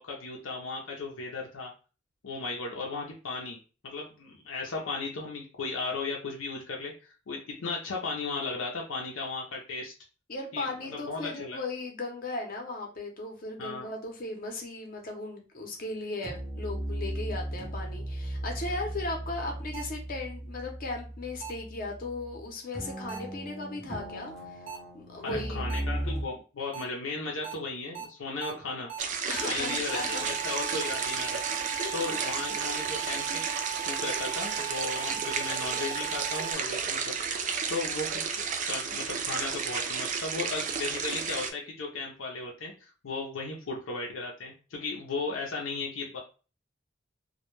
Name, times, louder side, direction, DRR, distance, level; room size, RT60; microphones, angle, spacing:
voice 1, 0.0-1.7 2.2-3.6 3.8-9.9 10.5-11.6 13.6-13.9 25.2-28.9 29.4-31.4 31.9-33.4 33.8-38.2 38.6-46.2, left 3 dB, 90° left, -1 dB, 0.5 m, -36 dB
voice 2, 10.3-24.3 24.9-25.6 29.3-30.3 31.8-32.2, left 2 dB, 45° left, 2 dB, 0.7 m, -37 dB
sound 1, 15.7-16.0 16.2-22.4 22.7-26.2, right 1 dB, 5° left, 0.6 m, -37 dB
sound 2, 19.7-19.8 21.4-21.5 23.1-23.2 24.7-24.8 25.7-25.8 26.7-26.8 27.4-27.5 27.9-28.0 28.4-28.5 28.9-29.0 29.4-36.5, right 10 dB, 80° right, 0.8 m, -38 dB
sound 3, 29.0-41.5, right 6 dB, 40° right, 0.3 m, -32 dB
2.2 x 2.1 x 3.0 m, 0.35 s
head